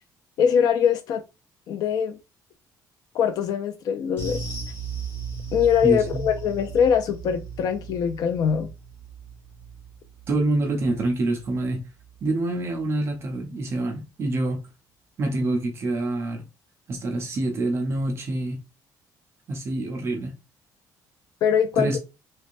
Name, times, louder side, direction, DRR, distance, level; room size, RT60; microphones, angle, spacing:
voice 1, 0.4-1.2 1.7-2.2 3.1-4.4 5.5-8.7 21.4-21.9, left 8 dB, 60° left, 0.4 m, -22 dB
sound 1, 4.2-12.8 13.1-13.3 13.7-13.8, right 5 dB, 35° left, 1.6 m, -37 dB
voice 2, 5.8-6.2 10.3-11.9 12.2-14.7 15.2-16.5 16.9-18.6 19.5-20.4 21.8-22.0, right 2 dB, 35° right, 0.6 m, -26 dB
3.3 x 3.2 x 2.5 m
cardioid pair, 165°, 7 cm